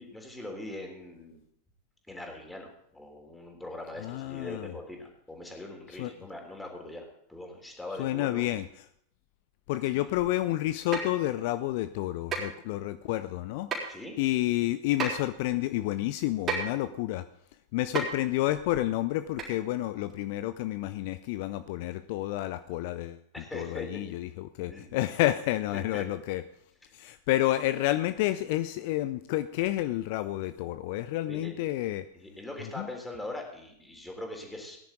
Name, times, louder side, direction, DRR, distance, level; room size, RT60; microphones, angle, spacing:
voice 1, 0.0-1.4 2.1-7.0 7.3-8.5 9.9-10.0 13.9-14.2 23.3-24.0 24.7-25.0 25.7-26.0 31.3-31.5 32.1-34.8, left 1 dB, 5° left, 1 dB, 3.1 m, -41 dB
voice 2, 4.0-4.7 6.0-6.1 8.0-8.8 9.7-17.3 17.7-23.2 23.5-24.3 24.6-26.4 26.9-32.0 32.8-32.9, left 15 dB, 50° left, 12 dB, 0.4 m, -30 dB
sound 1, 10.9-11.2 12.3-12.5 13.7-13.9 15.0-15.1 16.5-16.7 17.9-18.2 19.4-19.5 20.1-20.2, right 4 dB, 25° right, 3.9 m, -31 dB
18.5 x 10.5 x 3.8 m, 0.70 s
figure-of-eight pair, 90°, 0 cm